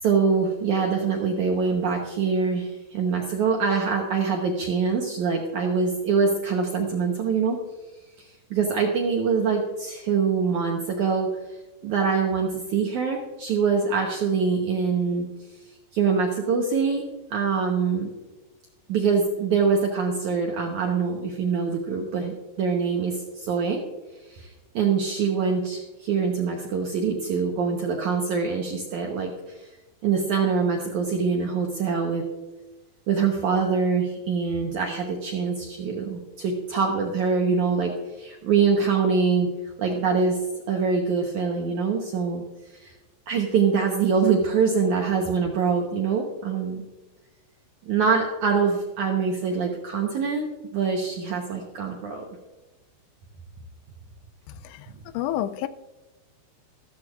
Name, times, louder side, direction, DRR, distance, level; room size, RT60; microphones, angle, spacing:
voice 1, 0.0-7.6 8.2-11.3 11.8-15.3 15.9-17.0 17.3-18.1 18.9-23.8 24.3-29.7 30.0-32.3 33.1-39.5 39.8-40.4 40.7-42.4 42.7-42.9 43.3-46.9 47.9-52.3, right 5 dB, 75° right, 0 dB, 1.8 m, -24 dB
voice 2, 55.1-55.7, left 12 dB, 85° left, 13 dB, 2.7 m, -28 dB
14.5 x 14.0 x 2.5 m, 1.1 s
omnidirectional pair, 4.9 m